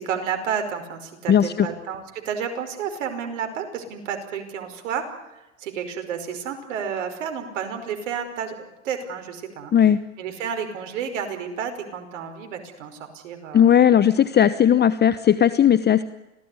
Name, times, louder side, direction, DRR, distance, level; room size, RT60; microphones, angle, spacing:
voice 1, 0.0-5.0 5.3-9.7 10.2-13.8, right 7 dB, 75° right, 6 dB, 5.2 m, -31 dB
voice 2, 1.3-1.7 9.7-10.0 13.5-16.0, left 9 dB, 25° left, 14 dB, 1.0 m, -17 dB
26.0 x 17.5 x 9.8 m, 0.99 s
hypercardioid pair, 95°, 38 cm